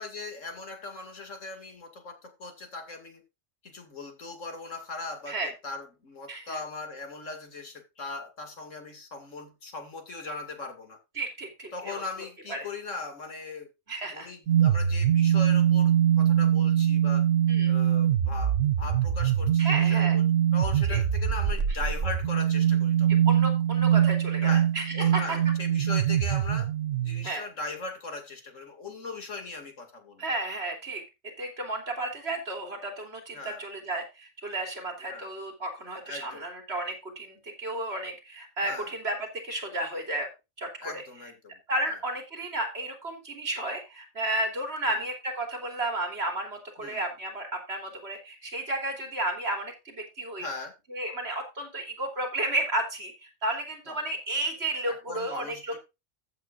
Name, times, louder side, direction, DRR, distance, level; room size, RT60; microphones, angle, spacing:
voice 1, 0.0-3.2 3.6-11.0 11.7-13.7 14.1-17.3 17.7-20.2 20.5-23.1 24.4-24.7 24.9-26.7 27.0-30.2 33.3-33.6 35.1-35.3 36.0-36.4 38.6-38.9 40.8-41.6 41.9-42.0 44.9-45.0 46.8-47.0 50.4-50.7 53.9-54.0 54.8-55.8, left 3 dB, 90° left, 2.7 m, -39 dB
voice 2, 6.3-6.6 11.1-12.0 12.5-12.6 13.9-14.3 17.5-17.7 19.6-20.2 20.9-21.0 23.2-25.4 27.2-27.4 30.2-40.3 40.6-41.0 41.7-50.5 50.9-55.7, right 1 dB, 55° right, 3.4 m, -33 dB
sound 1, 14.5-27.3, right 10 dB, 80° right, 1.3 m, -23 dB
15.0 x 8.3 x 2.5 m
omnidirectional pair, 1.3 m